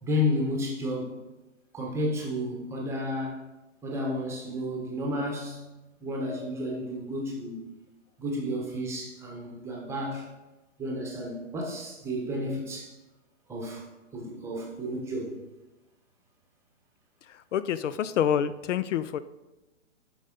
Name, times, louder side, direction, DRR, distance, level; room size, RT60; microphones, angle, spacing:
voice 1, 0.0-1.2 1.7-3.4 3.8-5.6 6.0-7.6 8.2-10.2 10.8-12.9 13.5-13.8 14.1-15.4, left 1 dB, 5° right, -2 dB, 0.9 m, -31 dB
voice 2, 17.3-19.2, left 9 dB, 70° left, 14 dB, 0.5 m, -27 dB
7.9 x 5.5 x 3.8 m, 1.1 s
hypercardioid pair, 150°, 38 cm